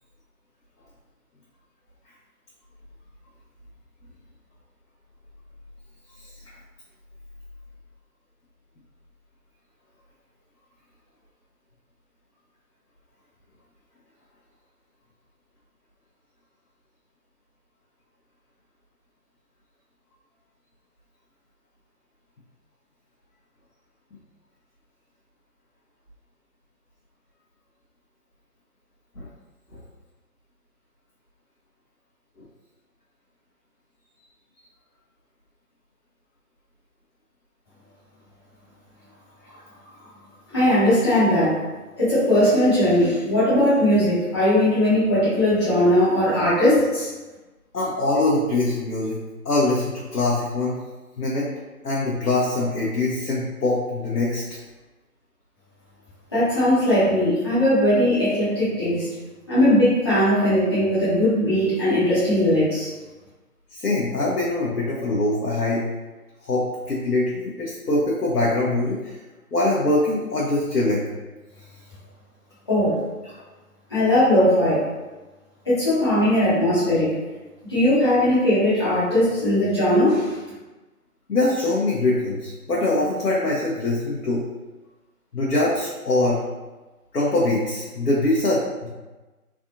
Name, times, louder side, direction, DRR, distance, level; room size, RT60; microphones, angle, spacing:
voice 1, 39.5-39.9 47.7-49.2 49.4-50.8 51.2-51.5 51.8-54.4 63.7-65.8 66.4-69.2 69.5-71.0 81.3-84.4 85.3-86.4 87.1-88.9, left 2 dB, 85° left, -6 dB, 0.9 m, -23 dB
voice 2, 40.5-41.6 42.0-47.1 56.3-59.1 59.5-62.9 72.7-73.0 73.9-74.8 75.6-77.1 77.7-80.4, left 1 dB, 15° left, -13 dB, 0.9 m, -19 dB
3.4 x 2.5 x 2.5 m, 1.2 s
figure-of-eight pair, 160°, 45 cm